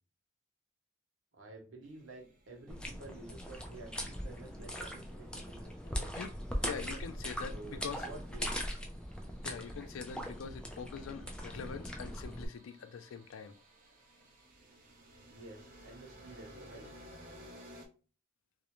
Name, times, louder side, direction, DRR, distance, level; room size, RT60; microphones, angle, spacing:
voice 1, 1.3-6.2 6.6-7.1 7.5-8.7 9.2-9.5 15.3-16.9, right 2 dB, 90° right, 0.8 m, -51 dB
sound 1, 1.8-6.2 7.7-17.9, equal, 45° right, 0.6 m, -58 dB
sound 2, 2.7-12.5, equal, 5° left, 0.3 m, -40 dB
voice 2, 6.6-8.0 9.4-13.5, left 6 dB, 90° left, 0.4 m, -44 dB
2.4 x 2.0 x 2.9 m
head